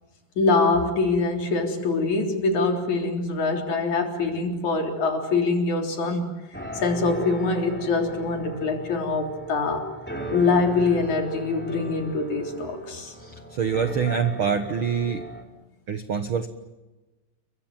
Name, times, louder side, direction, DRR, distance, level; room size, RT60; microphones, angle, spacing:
voice 1, 0.4-6.3 6.7-9.9 10.3-13.1, left 3 dB, 60° left, 3 dB, 4.9 m, -24 dB
sound 1, 6.5-15.4, equal, 5° left, 3.2 m, -38 dB
voice 2, 13.2-15.2 15.9-16.5, right 7 dB, 60° right, 9 dB, 1.4 m, -25 dB
30.0 x 24.0 x 7.4 m, 1.1 s
omnidirectional pair, 3.9 m